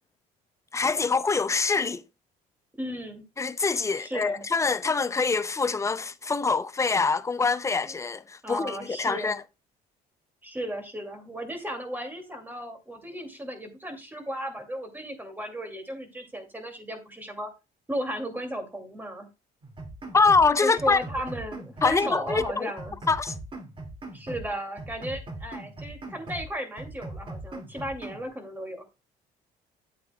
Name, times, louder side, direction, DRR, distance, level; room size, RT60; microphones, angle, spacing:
voice 1, 0.7-2.0 3.4-9.4 20.1-21.0 21.8-22.7 23.1-23.3, left 4 dB, 15° left, 0.5 m, -24 dB
voice 2, 2.8-3.2 4.0-4.4 7.9-8.0 8.4-9.4 10.4-17.5 17.9-19.3 20.6-22.9 24.1-28.8, equal, 10° right, 2.2 m, -35 dB
sound 1, 19.6-20.5 20.8-22.5 22.8-24.5 24.8-26.5 26.8-28.3, right 2 dB, 30° right, 2.1 m, -40 dB
9.6 x 8.2 x 2.2 m
cardioid pair, 110°, 17 cm